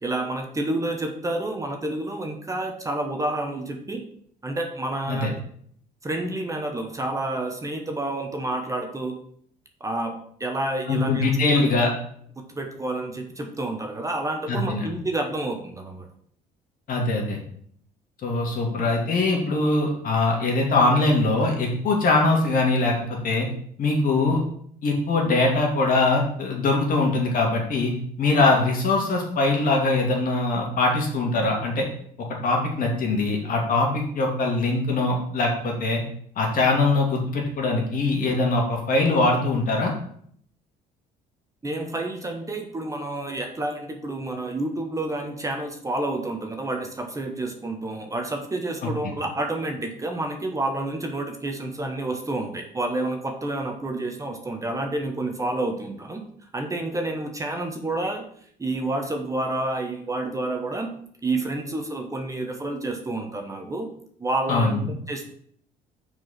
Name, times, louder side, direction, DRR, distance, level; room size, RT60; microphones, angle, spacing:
voice 1, 0.0-4.0 4.4-5.3 6.0-9.2 9.8-10.1 10.4-11.3 11.5-11.6 12.4-16.1 41.6-56.2 56.5-58.2 58.6-60.9 61.2-63.9 64.2-64.7 65.1-65.2, right 2 dB, 20° right, 4 dB, 1.1 m, -29 dB
voice 2, 10.9-11.9 14.5-14.9 16.9-17.4 18.2-23.5 23.8-24.4 24.8-27.9 28.2-31.9 32.4-36.0 36.4-39.9 48.8-49.1 64.5-64.9, left 2 dB, 55° left, 0 dB, 2.4 m, -22 dB
6.1 x 4.8 x 5.8 m, 0.64 s
cardioid pair, 110°, 17 cm